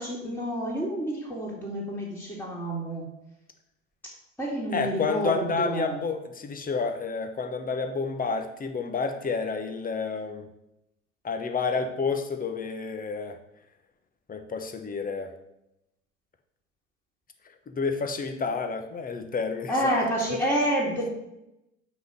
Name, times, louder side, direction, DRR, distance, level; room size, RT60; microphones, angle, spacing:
voice 1, 0.0-3.0 4.4-6.0 19.7-21.1, equal, 5° left, -5 dB, 2.6 m, -28 dB
voice 2, 4.7-10.5 11.2-13.4 14.3-15.3 17.7-20.0, left 4 dB, 20° left, 7 dB, 1.2 m, -30 dB
6.0 x 5.5 x 6.7 m, 0.87 s
figure-of-eight pair, 70°, 38 cm